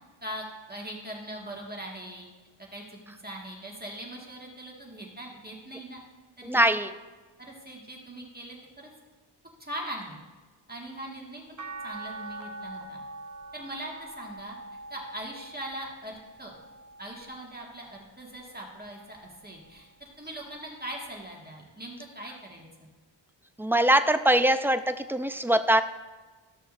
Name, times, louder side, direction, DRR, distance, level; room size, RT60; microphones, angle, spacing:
voice 1, 0.2-2.3 2.6-6.0 6.4-6.7 7.4-8.9 9.6-10.2 10.7-11.6 11.8-13.0 13.5-14.6 14.9-16.6 17.0-22.9, right 1 dB, 20° right, -2 dB, 1.8 m, -41 dB
voice 2, 6.5-6.9 23.6-25.8, right 1 dB, 5° right, 9 dB, 0.4 m, -22 dB
sound 1, 11.6-17.9 18.4-19.8 21.2-21.3, right 2 dB, 40° right, 0.7 m, -44 dB
14.0 x 6.5 x 2.6 m, 1.3 s
wide cardioid pair, 65°, 45 cm